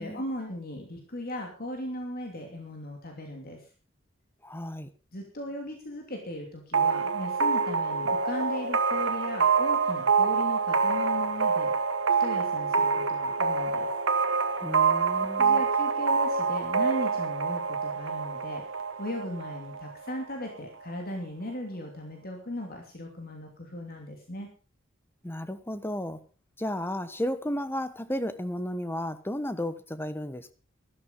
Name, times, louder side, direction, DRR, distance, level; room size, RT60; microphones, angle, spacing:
voice 1, 0.0-3.6 5.1-11.7 12.2-13.9 15.4-24.5, left 1 dB, 50° left, 2.8 m, -37 dB
voice 2, 4.4-4.9 14.6-15.6 25.2-26.2 26.6-30.5, left 1 dB, 10° left, 1.1 m, -33 dB
sound 1, 6.7-20.2, right 5 dB, 70° right, 1.4 m, -26 dB
13.5 x 13.0 x 5.4 m
head